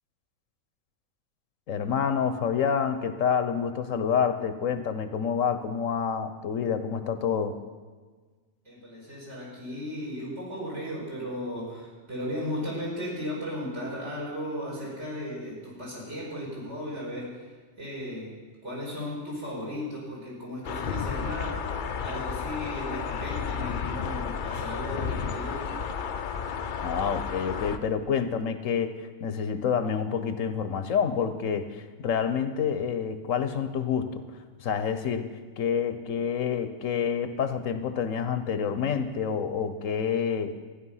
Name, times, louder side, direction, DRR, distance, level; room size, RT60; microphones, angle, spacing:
voice 1, 1.7-7.6 26.8-34.2 34.6-35.3 35.6-40.5, left 7 dB, 75° left, 10 dB, 1.2 m, -28 dB
voice 2, 8.7-17.5 17.8-18.3 18.6-25.8, equal, 60° right, -6 dB, 5.4 m, -36 dB
sound 1, 20.6-27.8, left 6 dB, 50° left, 0.6 m, -32 dB
15.0 x 10.5 x 5.6 m, 1.4 s
omnidirectional pair, 1.4 m